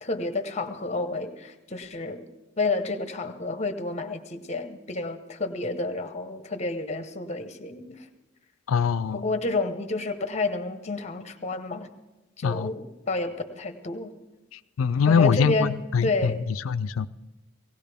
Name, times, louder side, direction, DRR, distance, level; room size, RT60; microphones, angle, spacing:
voice 1, 0.0-2.2 2.6-8.1 9.1-11.9 12.4-14.1 15.1-16.5, left 3 dB, 35° left, 9 dB, 1.0 m, -30 dB
voice 2, 8.7-9.2 12.4-12.7 14.8-16.3 16.6-17.1, left 6 dB, 90° left, 13 dB, 0.4 m, -23 dB
18.5 x 17.5 x 3.5 m, 1.1 s
head